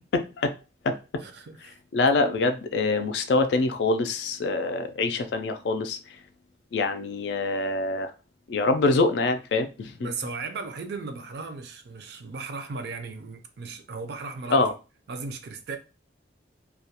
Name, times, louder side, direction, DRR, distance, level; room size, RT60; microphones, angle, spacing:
voice 1, 0.1-0.5 0.8-1.0 1.9-6.0 6.7-8.1 8.5-10.1 14.5-14.7, left 3 dB, 65° left, 0.3 m, -25 dB
voice 2, 1.2-1.8 10.0-14.7 15.1-15.8, right 4 dB, 60° right, 0.4 m, -36 dB
2.3 x 2.1 x 2.8 m
head